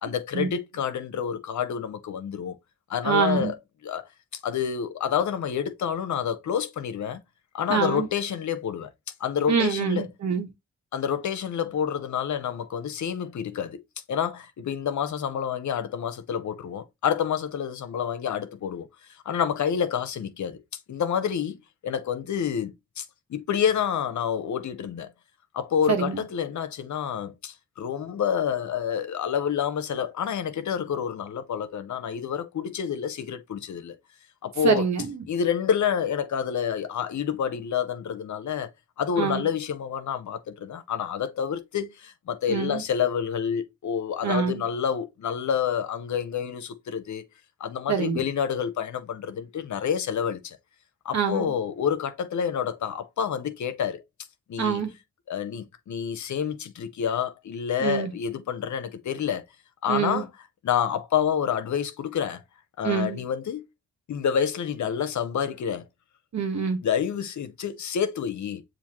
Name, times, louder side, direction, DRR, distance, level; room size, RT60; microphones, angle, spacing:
voice 1, 0.0-2.6 2.9-3.6 3.8-4.1 4.4-7.2 7.5-8.9 9.2-10.1 10.9-13.8 14.1-18.9 19.2-20.6 20.9-25.1 25.5-34.0 34.4-34.8 35.3-38.7 39.0-47.2 47.6-50.6 51.0-54.0 54.5-54.8 55.3-59.4 59.8-60.3 60.6-62.4 62.8-63.6 64.1-65.8 66.8-68.6, left 8 dB, 65° left, 0.8 m, -28 dB
voice 2, 3.0-3.5 7.7-8.1 9.5-10.5 25.9-26.2 34.6-35.2 39.2-39.5 42.5-42.8 44.2-44.6 47.9-48.2 51.1-51.5 54.6-54.9 57.8-58.1 59.9-60.2 62.8-63.2 66.3-66.8, right 6 dB, 60° right, 1.3 m, -25 dB
7.0 x 2.6 x 3.0 m
supercardioid pair, 50°, 31 cm